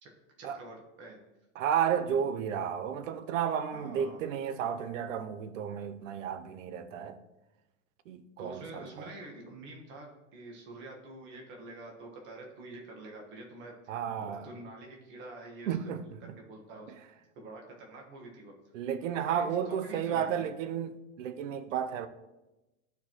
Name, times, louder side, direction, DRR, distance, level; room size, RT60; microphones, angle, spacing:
voice 1, 0.4-1.2 3.7-4.2 8.4-15.8 16.4-16.9 17.3-18.5 19.1-20.3, right 2 dB, 30° right, 1.5 m, -47 dB
voice 2, 1.6-7.2 8.1-9.1 13.9-14.5 15.7-16.4 18.7-22.1, right 8 dB, 75° right, 0.8 m, -32 dB
12.5 x 4.6 x 3.0 m
supercardioid pair, 155°, 38 cm